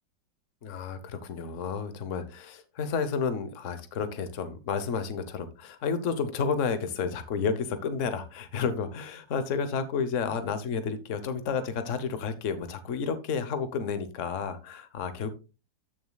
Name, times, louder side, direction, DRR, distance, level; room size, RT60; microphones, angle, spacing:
voice 1, 0.6-15.3, left 5 dB, 50° left, 11 dB, 1.2 m, -31 dB
14.0 x 6.4 x 2.3 m, 0.30 s
omnidirectional pair, 2.0 m